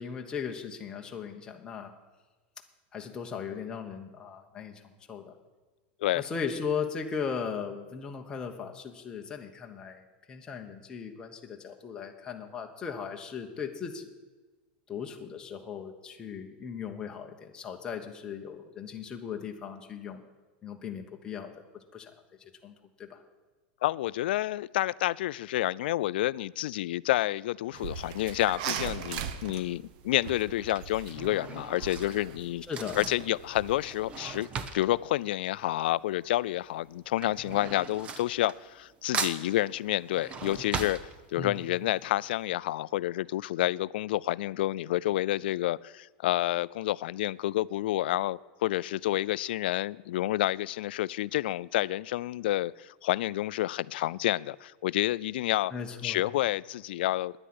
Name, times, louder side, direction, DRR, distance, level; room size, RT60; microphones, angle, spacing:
voice 1, 0.0-1.9 2.9-5.3 6.1-14.1 14.9-20.2 20.6-21.7 21.9-22.1 22.4-23.2 32.7-33.1 41.4-41.7 55.7-56.2, left 6 dB, 15° left, 1.1 m, -38 dB
voice 2, 23.8-32.6 33.0-34.5 34.7-41.0 41.3-55.7 56.0-57.3, left 15 dB, 80° left, 0.3 m, -29 dB
sound 1, 27.7-34.4, right 7 dB, 55° right, 1.0 m, -40 dB
Drawer open or close / Cutlery silverware, 29.5-29.6 30.4-36.2 36.5-38.9 39.1-41.7 42.1-42.2 42.4-42.5, right 5 dB, 20° right, 0.8 m, -39 dB
10.0 x 9.9 x 9.6 m
supercardioid pair, 165°, 5 cm